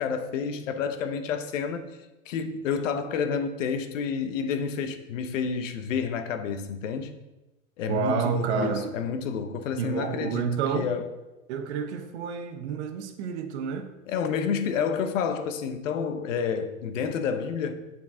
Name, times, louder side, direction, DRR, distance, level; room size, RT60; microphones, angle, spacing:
voice 1, 0.0-1.9 2.3-7.1 7.8-11.1 14.1-17.7, left 6 dB, 70° left, 0.9 m, -29 dB
voice 2, 7.9-8.9 9.8-10.9 11.5-13.9, right 6 dB, 55° right, 0.9 m, -29 dB
8.3 x 4.6 x 3.7 m
supercardioid pair, 150°, 40 cm